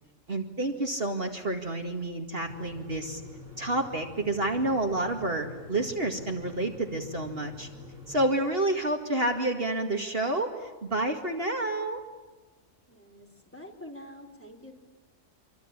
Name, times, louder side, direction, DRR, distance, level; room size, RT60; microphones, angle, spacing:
voice 1, 0.3-3.2 3.6-7.7 8.1-12.0, right 2 dB, 45° right, 3 dB, 2.4 m, -29 dB
sound 1, 2.4-8.2, left 2 dB, 80° right, 7.3 m, -46 dB
voice 2, 12.9-14.7, left 1 dB, 10° left, 2 dB, 4.4 m, -46 dB
27.5 x 24.0 x 8.9 m, 1.2 s
omnidirectional pair, 1.4 m